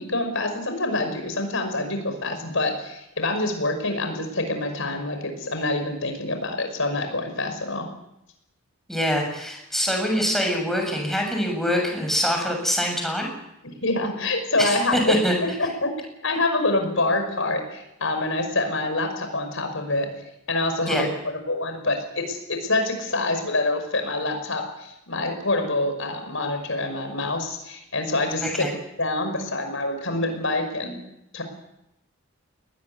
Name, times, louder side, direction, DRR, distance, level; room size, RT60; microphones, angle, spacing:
voice 1, 0.0-7.9 13.6-15.0 15.4-15.9 16.2-20.1 20.5-21.1 21.5-28.5 29.0-31.0 31.3-31.4, left 2 dB, 65° left, 6 dB, 5.6 m, -26 dB
voice 2, 8.9-13.3 14.6-15.3 20.9-21.1 28.4-28.7, equal, ahead, 1 dB, 7.1 m, -24 dB
21.0 x 19.5 x 9.6 m, 0.83 s
head